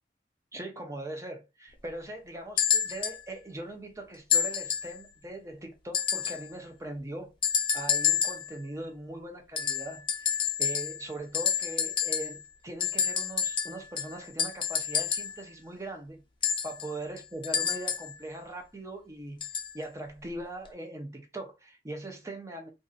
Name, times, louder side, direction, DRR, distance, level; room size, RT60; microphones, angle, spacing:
voice 1, 0.5-7.3 7.7-16.2 16.6-19.5 19.7-22.7, right 1 dB, 20° right, 0.7 m, -40 dB
sound 1, 2.6-3.2 4.3-5.0 5.9-6.5 7.4-8.5 9.6-11.1 11.3-12.4 12.8-15.4 16.4-18.2 19.4-19.7 20.7-20.8, left 7 dB, 30° left, 0.6 m, -29 dB
2.6 x 2.5 x 3.8 m
head